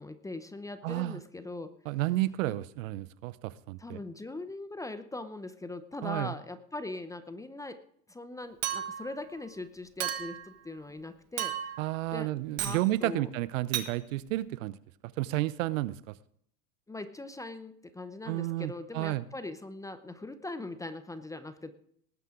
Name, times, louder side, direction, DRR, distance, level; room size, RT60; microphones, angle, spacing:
voice 1, 0.0-1.7 2.5-2.6 3.8-7.8 8.1-11.7 12.1-12.3 12.6-13.3 16.9-21.7, left 2 dB, 5° left, 11 dB, 0.7 m, -41 dB
voice 2, 0.8-1.2 1.9-4.0 6.0-6.3 11.8-14.8 15.2-16.1 18.3-19.3, right 17 dB, 55° right, 18 dB, 0.8 m, -31 dB
Chink clink, 8.6-9.1 10.0-10.5 11.4-11.9 12.6-12.8 13.7-13.9, right 10 dB, 30° right, 1.5 m, -33 dB
19.5 x 9.2 x 3.7 m, 0.65 s
hypercardioid pair, 100°, 48 cm